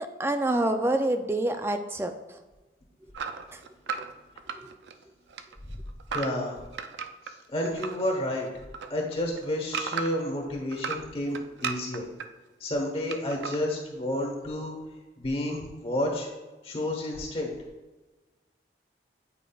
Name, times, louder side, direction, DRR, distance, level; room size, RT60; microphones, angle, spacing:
voice 1, 0.0-2.1 3.5-3.6 4.5-4.7, right 1 dB, 15° right, 7 dB, 0.3 m, -27 dB
sound 1, 3.1-5.0 5.3-8.0 8.4-10.3 10.7-12.3 13.1-13.6, right 6 dB, 80° right, 0.4 m, -35 dB
voice 2, 6.1-6.6 7.3-8.5 8.9-12.1 12.6-14.7 15.2-16.3 16.6-17.5, left 1 dB, 35° left, 0 dB, 1.2 m, -30 dB
8.7 x 4.8 x 2.3 m, 1.2 s
head